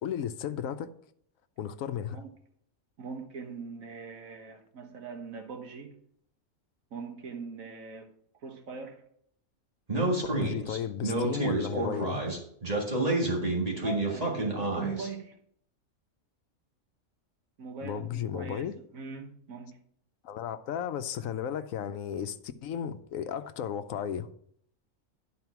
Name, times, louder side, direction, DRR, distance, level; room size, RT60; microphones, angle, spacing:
voice 1, 0.0-0.9 1.6-2.2 10.2-12.2 17.8-18.7 20.2-24.3, left 9 dB, 80° left, 1.0 m, -34 dB
voice 2, 3.0-6.0 6.9-8.1 8.4-9.0 13.8-15.3 17.6-18.7 18.9-19.8, right 4 dB, 75° right, 1.6 m, -41 dB
Speech, 9.9-15.1, right 2 dB, 30° right, 1.8 m, -29 dB
11.0 x 4.4 x 5.8 m
omnidirectional pair, 1.4 m